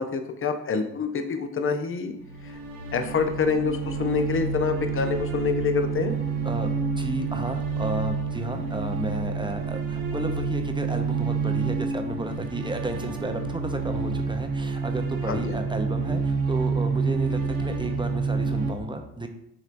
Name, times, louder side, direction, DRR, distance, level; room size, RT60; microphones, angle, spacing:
voice 1, 0.0-2.1 2.4-2.6 2.9-6.1 15.3-15.6, left 5 dB, 35° left, 8 dB, 0.7 m, -26 dB
sound 1, 2.2-18.7, right 4 dB, 90° right, 0.9 m, -28 dB
voice 2, 7.0-19.3, right 2 dB, 15° right, 5 dB, 0.6 m, -32 dB
6.3 x 3.2 x 2.6 m, 0.78 s
supercardioid pair, 60°, 36 cm